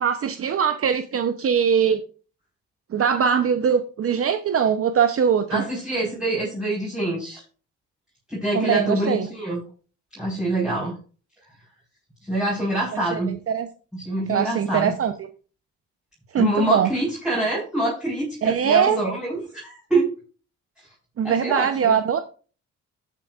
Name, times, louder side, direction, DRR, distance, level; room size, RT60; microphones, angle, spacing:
voice 1, 0.0-2.0 2.9-5.6 8.5-9.3 12.9-13.2 13.5-13.7 14.3-15.1 16.3-16.9 18.4-19.0 21.2-22.2, right 7 dB, 50° right, 9 dB, 0.8 m, -21 dB
voice 2, 5.5-7.4 8.3-9.6 10.1-11.0 12.2-13.4 13.9-14.9 16.3-20.1 21.2-21.9, right 1 dB, 5° right, -6 dB, 4.8 m, -25 dB
14.5 x 8.5 x 2.5 m, 0.37 s
cardioid pair, 90°, 30 cm